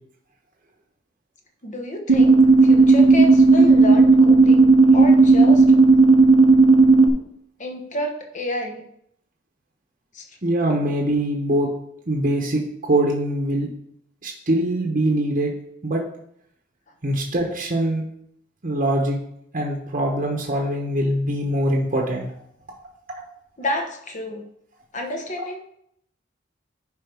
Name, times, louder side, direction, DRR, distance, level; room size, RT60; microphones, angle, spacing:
voice 1, 1.6-2.3 2.6-5.6 7.6-8.9 10.1-10.3 23.6-24.4 24.9-25.6, left 1 dB, 40° left, 3 dB, 1.1 m, -29 dB
sound 1, 2.1-7.1, right 3 dB, 85° right, 0.9 m, -13 dB
voice 2, 10.4-11.7 12.1-13.7 14.2-15.5 15.8-16.0 17.0-18.0 18.6-19.2 19.5-22.3, right 1 dB, 45° right, 0 dB, 1.0 m, -23 dB
10.5 x 5.3 x 3.5 m, 0.73 s
head